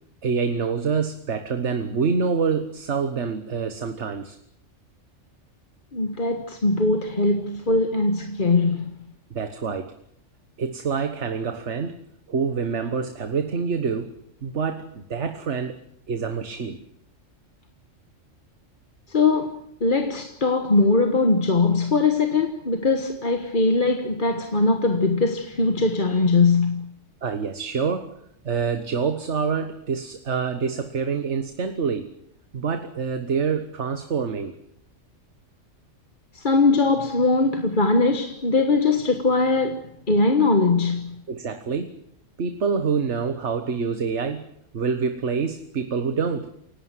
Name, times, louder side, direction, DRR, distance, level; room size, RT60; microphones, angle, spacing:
voice 1, 0.2-4.4 9.3-9.9 10.6-15.8 16.1-16.8 27.2-28.2 28.4-32.1 32.5-34.5 41.3-42.0 42.4-44.5 44.7-46.5, right 5 dB, 60° right, 1.7 m, -26 dB
voice 2, 5.9-9.0 19.1-26.8 36.3-41.1, left 3 dB, 40° left, 1.6 m, -21 dB
29.0 x 17.5 x 7.7 m
omnidirectional pair, 1.3 m